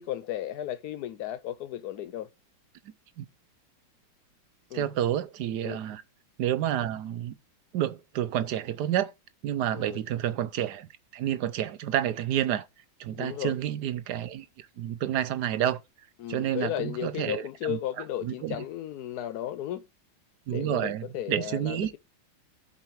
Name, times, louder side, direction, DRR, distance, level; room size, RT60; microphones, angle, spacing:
voice 1, 0.0-2.3 4.7-4.9 5.6-5.8 9.7-10.0 13.1-13.6 16.2-19.9 20.5-22.0, left 12 dB, 70° left, 0.9 m, -35 dB
voice 2, 4.7-6.0 6.4-7.3 7.7-9.1 9.4-12.6 13.0-15.8 16.3-17.8 18.2-18.6 20.5-22.0, right 11 dB, 65° right, 1.1 m, -29 dB
7.7 x 7.2 x 4.7 m
omnidirectional pair, 2.2 m